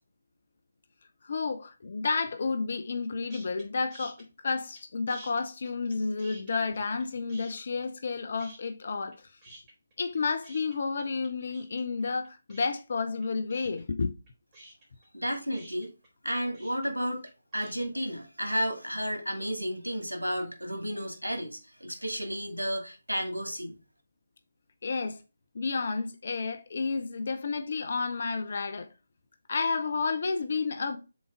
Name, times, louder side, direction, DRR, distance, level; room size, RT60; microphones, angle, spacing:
voice 1, 1.2-9.3 10.0-14.1 24.8-25.2 25.5-28.9 29.5-31.0, left 4 dB, 50° left, 0.8 m, -31 dB
sound 1, 3.3-3.6 3.9-4.8 5.1-7.0 7.3-8.1 8.4-9.2 9.4-17.9, right 2 dB, 20° right, 3.2 m, -51 dB
voice 2, 15.1-15.9 16.2-23.8, equal, 85° right, 2.2 m, -32 dB
7.1 x 3.9 x 4.6 m
figure-of-eight pair, 150°, 0 cm